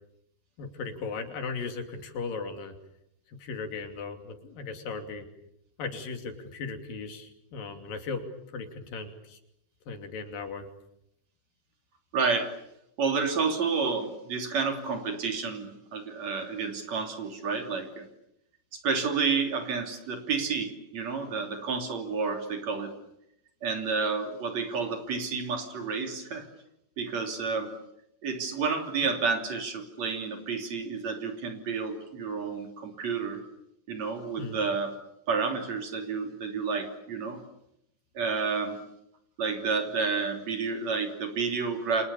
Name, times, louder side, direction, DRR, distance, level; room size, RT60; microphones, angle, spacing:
voice 1, 0.6-2.7 3.3-5.3 5.8-8.2 8.5-9.4 9.9-10.7 34.4-34.6, left 4 dB, 80° left, 6 dB, 4.5 m, -37 dB
voice 2, 12.1-12.5 13.0-18.1 18.8-22.9 23.6-26.5 27.0-27.7 28.2-33.4 33.9-34.9 35.3-37.4 38.1-38.8 39.4-42.1, right 5 dB, 50° right, 5 dB, 4.2 m, -30 dB
30.0 x 26.5 x 7.0 m, 0.79 s
omnidirectional pair, 3.9 m